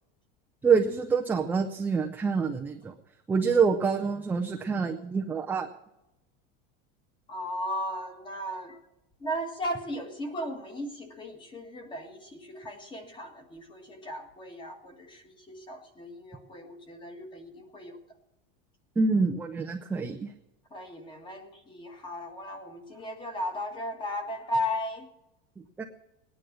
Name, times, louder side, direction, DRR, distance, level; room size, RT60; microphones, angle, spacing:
voice 1, 0.6-2.9 3.3-5.7 19.0-20.3 25.8-25.9, right 5 dB, 5° right, 2 dB, 0.5 m, -26 dB
voice 2, 7.3-8.8 9.2-18.0 20.7-25.1, equal, 15° left, 6 dB, 1.8 m, -36 dB
18.5 x 10.0 x 6.2 m, 0.93 s
supercardioid pair, 175°, 29 cm